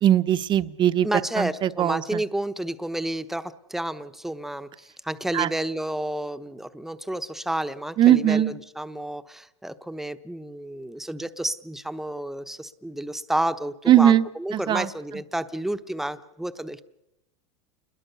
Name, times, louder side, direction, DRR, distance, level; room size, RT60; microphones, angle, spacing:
voice 1, 0.0-1.1 1.4-2.2 5.3-5.5 8.0-8.5 13.9-14.2 14.5-14.9, right 11 dB, 30° right, 13 dB, 0.9 m, -19 dB
voice 2, 1.0-16.8, right 1 dB, ahead, 11 dB, 0.9 m, -31 dB
28.0 x 21.5 x 6.9 m, 0.94 s
supercardioid pair, 125°, 15 cm